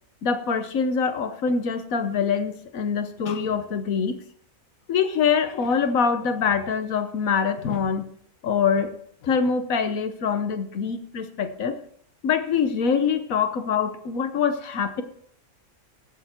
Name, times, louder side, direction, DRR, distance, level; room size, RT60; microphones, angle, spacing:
voice 1, 0.2-4.2 4.9-8.1 8.4-8.9 9.2-11.8 12.2-15.0, left 6 dB, 80° left, 9 dB, 1.4 m, -24 dB
15.5 x 6.7 x 4.4 m, 0.64 s
omnidirectional pair, 1.4 m